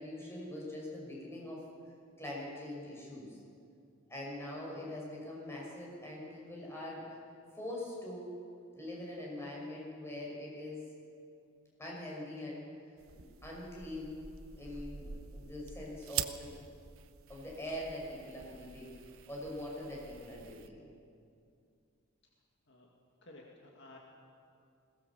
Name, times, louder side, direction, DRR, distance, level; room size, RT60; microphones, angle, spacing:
voice 1, 0.0-1.6 2.2-3.4 4.1-7.1 7.5-8.3 8.7-10.8 11.8-12.6 13.1-14.2 14.6-16.6 17.3-18.9 19.3-20.8, left 1 dB, 10° left, -3 dB, 5.8 m, -43 dB
sound 1, 13.0-20.7, right 9 dB, 75° right, 0.9 m, -45 dB
voice 2, 23.2-24.0, left 2 dB, 55° left, -1 dB, 2.3 m, -54 dB
21.0 x 18.0 x 7.2 m, 2.5 s
head